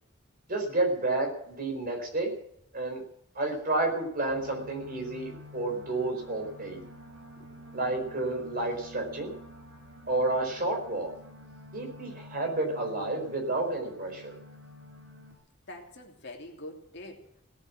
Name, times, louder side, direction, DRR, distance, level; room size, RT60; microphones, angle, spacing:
voice 1, 0.5-2.4 2.7-3.0 3.3-6.8 7.7-9.3 10.1-11.1 11.7-14.3, right 2 dB, 45° right, 2 dB, 4.5 m, -30 dB
sound 1, 4.3-15.3, left 1 dB, 65° right, 5.0 m, -49 dB
voice 2, 15.7-17.4, left 1 dB, 55° left, 1 dB, 2.9 m, -45 dB
17.5 x 7.8 x 9.8 m, 0.73 s
head